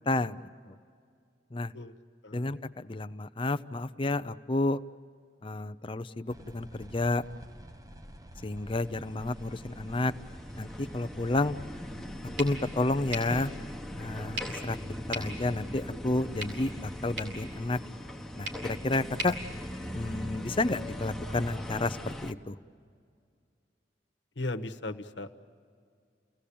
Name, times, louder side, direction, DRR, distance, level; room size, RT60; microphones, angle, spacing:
voice 1, 0.1-0.4 0.7-0.8 1.5-1.7 2.3-4.8 5.4-7.2 8.4-10.1 10.6-11.6 12.4-13.5 13.9-17.8 18.4-19.4 19.9-22.6, left 2 dB, 30° left, 11 dB, 0.6 m, -31 dB
sound 1, 6.3-11.9, equal, 20° right, 0.8 m, -49 dB
sound 2, 8.6-22.3, equal, ahead, 1.1 m, -40 dB
sound 3, 12.4-20.4, right 1 dB, 80° right, 6.6 m, -43 dB
voice 2, 24.4-25.4, left 2 dB, 85° left, 6 dB, 1.3 m, -37 dB
30.0 x 18.0 x 8.6 m, 2.3 s
head